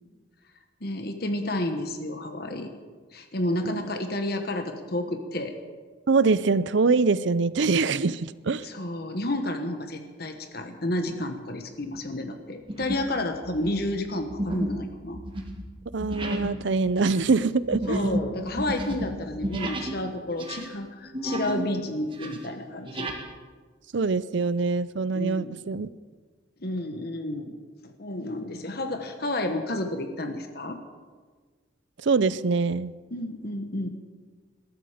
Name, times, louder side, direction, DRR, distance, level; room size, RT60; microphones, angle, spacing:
voice 1, 0.8-2.7 3.1-5.6 8.6-15.2 17.9-23.1 25.1-25.6 26.6-27.6 27.8-30.8 33.1-33.9, left 1 dB, 55° left, 6 dB, 1.3 m, -31 dB
voice 2, 6.1-8.6 15.9-18.0 23.9-25.9 32.0-32.9, right 4 dB, 70° right, 17 dB, 0.5 m, -24 dB
sound 1, 11.1-11.3 11.8-12.1 12.7-13.1 13.4-20.0 20.3-21.7 22.0-23.2, right 1 dB, 25° right, 1.9 m, -32 dB
21.0 x 13.5 x 5.1 m, 1.5 s
head